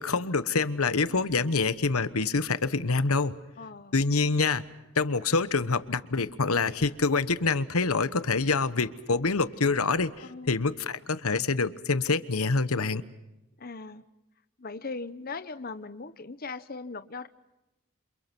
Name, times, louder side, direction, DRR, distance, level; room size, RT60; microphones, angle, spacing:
voice 1, 0.0-3.3 3.9-4.6 5.0-13.0, left 4 dB, 90° left, 14 dB, 1.1 m, -26 dB
voice 2, 3.6-3.9 10.2-10.5 13.6-14.0 14.6-17.3, left 4 dB, 45° left, 11 dB, 0.9 m, -39 dB
28.5 x 28.0 x 6.1 m, 0.96 s
head